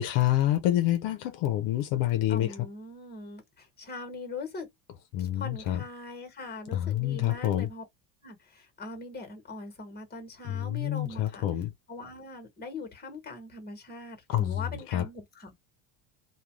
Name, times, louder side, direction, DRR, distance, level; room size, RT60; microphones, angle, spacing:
voice 1, 0.0-2.5 5.1-5.8 6.7-7.7 10.5-11.7 14.3-14.6 14.9-15.1, left 13 dB, 70° left, 0.6 m, -27 dB
voice 2, 2.3-4.7 5.2-7.8 8.2-11.4 11.9-15.5, left 3 dB, 20° left, 1.1 m, -41 dB
2.3 x 2.3 x 3.1 m
supercardioid pair, 110°, 50 cm